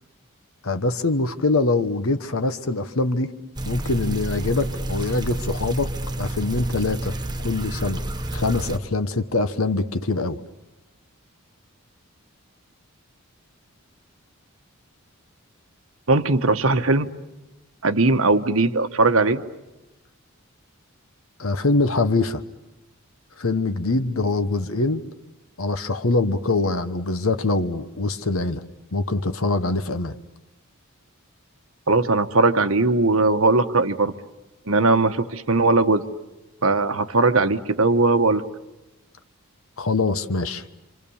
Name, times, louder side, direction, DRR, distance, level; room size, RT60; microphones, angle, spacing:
voice 1, 0.6-3.3 3.6-5.9 6.2-8.0 8.3-10.4 21.4-22.4 23.4-25.0 25.6-28.6 28.9-30.1 39.8-40.6, left 3 dB, 70° left, 9 dB, 1.1 m, -23 dB
sound 1, 3.5-8.8, right 1 dB, 20° right, 1.0 m, -29 dB
voice 2, 16.1-17.1 17.8-19.4 31.9-34.1 34.7-36.0 36.6-38.4, right 3 dB, 70° right, 9 dB, 1.2 m, -19 dB
28.0 x 26.0 x 7.2 m, 1.0 s
head